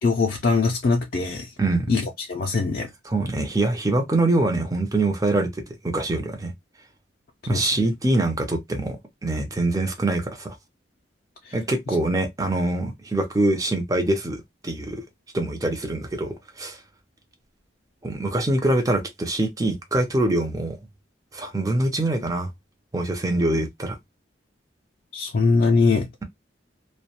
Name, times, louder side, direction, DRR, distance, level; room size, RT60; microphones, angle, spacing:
voice 1, 0.0-1.5 1.9-2.9 7.5-7.7 11.5-11.6 25.1-26.1, left 4 dB, 50° left, 0.4 m, -22 dB
voice 2, 1.6-1.9 3.1-6.5 7.5-9.0 9.2-10.6 11.5-15.0 15.3-16.8 18.0-20.8 21.3-22.5 22.9-24.0, right 2 dB, 20° right, 0.5 m, -24 dB
2.3 x 2.1 x 2.7 m
head